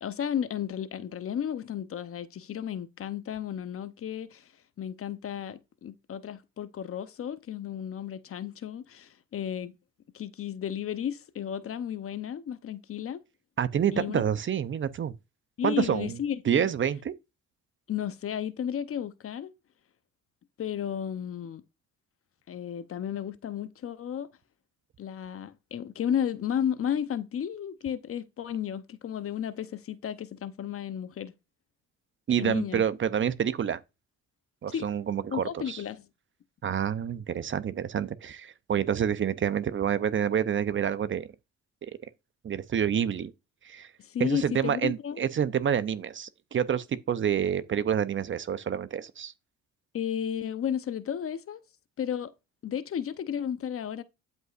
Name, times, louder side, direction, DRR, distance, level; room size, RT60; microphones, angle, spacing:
voice 1, 0.0-4.5 4.8-9.7 10.1-13.2 13.9-14.2 15.6-16.7 17.9-19.5 20.6-21.6 22.5-24.3 25.0-31.3 32.4-32.8 34.7-34.9 35.3-36.1 44.0-45.2 49.9-51.6 52.0-52.3 52.6-54.0, left 9 dB, 45° left, 0.7 m, -33 dB
voice 2, 13.6-15.1 15.6-16.2 16.5-17.1 32.3-33.8 34.6-35.8 36.6-41.3 41.8-41.9 42.4-43.3 43.6-43.9 44.2-49.3, right 8 dB, 40° right, 0.6 m, -28 dB
12.0 x 5.5 x 2.5 m
cardioid pair, 90°, 31 cm